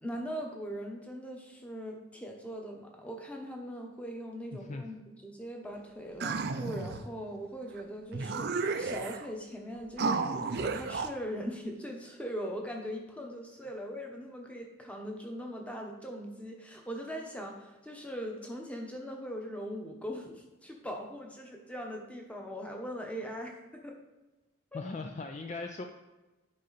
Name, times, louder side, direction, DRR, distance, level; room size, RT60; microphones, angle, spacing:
voice 1, 0.0-5.0 5.2-24.0 24.7-24.8, equal, 5° left, 1 dB, 1.0 m, -40 dB
voice 2, 4.5-4.8 24.7-25.8, left 3 dB, 35° left, 4 dB, 0.4 m, -39 dB
sound 1, 6.2-7.1 7.8-7.9 8.1-9.3 10.0-11.1, right 4 dB, 50° right, 0.5 m, -32 dB
9.5 x 5.5 x 4.1 m, 1.1 s
head